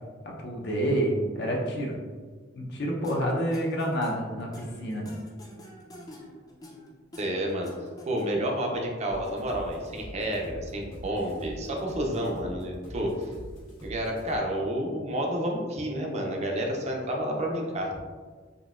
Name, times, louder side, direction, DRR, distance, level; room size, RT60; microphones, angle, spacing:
voice 1, 0.4-1.9 2.5-5.1, equal, 60° left, -1 dB, 0.7 m, -28 dB
sound 1, 3.0-8.6, left 1 dB, 20° left, 0.5 m, -46 dB
voice 2, 7.2-7.7 8.1-13.3 13.8-17.9, right 1 dB, 35° right, 1 dB, 0.5 m, -30 dB
sound 2, 9.1-14.4, equal, 80° left, 1.4 m, -44 dB
3.8 x 2.6 x 2.4 m, 1.5 s
head